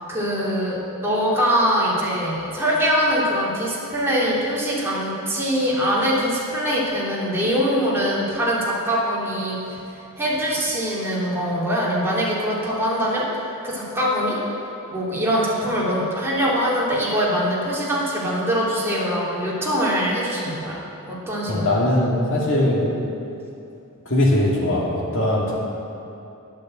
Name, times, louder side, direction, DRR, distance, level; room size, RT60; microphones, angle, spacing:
voice 1, 0.1-13.3 13.6-14.4 14.9-21.9, equal, 10° right, -7 dB, 2.9 m, -23 dB
voice 2, 21.5-22.9 24.1-25.6, left 1 dB, 60° left, -4 dB, 2.4 m, -20 dB
10.5 x 9.0 x 7.8 m, 2.8 s
head